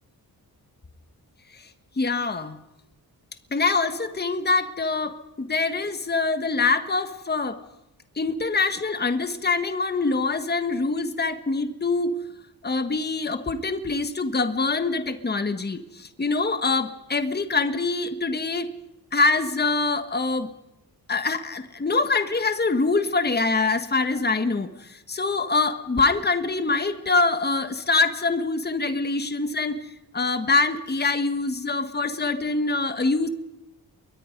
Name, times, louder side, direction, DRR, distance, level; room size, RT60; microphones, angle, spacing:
voice 1, 2.0-2.6 3.5-7.6 8.1-12.2 12.6-18.7 19.1-20.5 21.1-29.8 30.1-33.3, left 3 dB, 25° left, 9 dB, 1.5 m, -24 dB
28.5 x 23.0 x 5.3 m, 0.93 s
wide cardioid pair, 135°, 39 cm